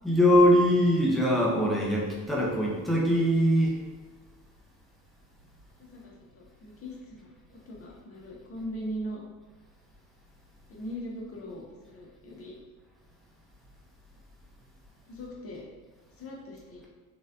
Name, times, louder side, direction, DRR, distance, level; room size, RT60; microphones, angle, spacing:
voice 1, 0.0-3.8, equal, ahead, -4 dB, 0.8 m, -22 dB
voice 2, 5.8-9.2 10.7-12.5 15.1-15.6 16.2-16.9, equal, 30° left, -2 dB, 1.0 m, -40 dB
3.9 x 3.1 x 2.5 m, 1.3 s
figure-of-eight pair, 55°, 48 cm